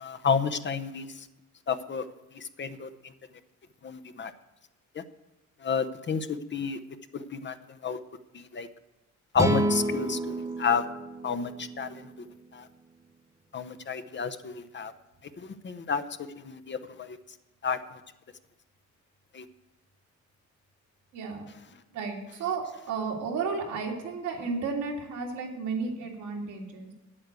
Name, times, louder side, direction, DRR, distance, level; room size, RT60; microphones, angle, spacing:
voice 1, 0.0-1.0 1.7-2.0 2.6-2.9 3.8-4.3 5.6-6.2 6.5-6.8 7.4-7.5 7.8-8.0 8.6-8.7 9.3-10.2 10.6-10.8 11.2-11.5 11.8-11.9 13.5-14.9 15.6-16.0 16.7-16.8 17.6-17.8, left 6 dB, 40° left, 10 dB, 0.8 m, -29 dB
sound 1, 9.4-12.7, right 1 dB, 10° right, 1.3 m, -30 dB
voice 2, 21.1-21.4 21.9-26.9, right 4 dB, 85° right, -1 dB, 2.6 m, -33 dB
9.3 x 8.6 x 8.2 m, 0.96 s
cardioid pair, 90°, 30 cm